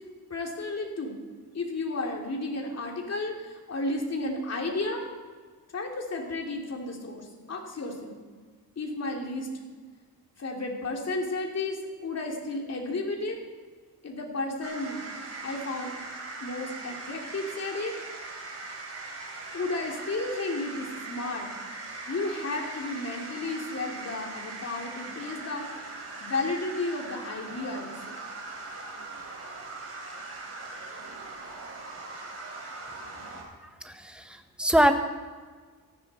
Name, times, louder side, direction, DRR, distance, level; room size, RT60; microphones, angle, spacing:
voice 1, 0.3-1.2 1.5-5.1 5.7-8.2 8.8-9.5 10.4-13.4 14.0-15.0 15.4-15.9 16.4-17.9 19.5-21.5 22.1-25.6 26.2-28.2, left 2 dB, 40° left, 0 dB, 3.2 m, -33 dB
sound 1, 14.6-33.4, right 3 dB, 40° right, 4.1 m, -40 dB
voice 2, 33.8-35.0, right 1 dB, 5° right, 6 dB, 1.3 m, -24 dB
18.5 x 13.5 x 4.4 m, 1.5 s
cardioid pair, 125°, 38 cm